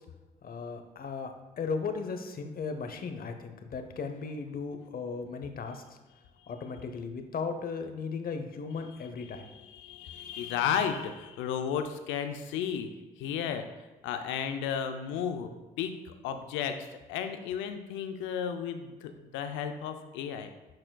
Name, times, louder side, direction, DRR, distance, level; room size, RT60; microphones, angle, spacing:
voice 1, 0.4-5.8 6.5-9.5, left 5 dB, 50° left, 7 dB, 0.8 m, -36 dB
voice 2, 9.2-12.9 13.2-13.7 14.0-15.5 15.8-16.0 16.2-20.5, left 8 dB, 80° left, 7 dB, 0.5 m, -33 dB
10.5 x 4.3 x 2.3 m, 1.2 s
hypercardioid pair, 50°, 19 cm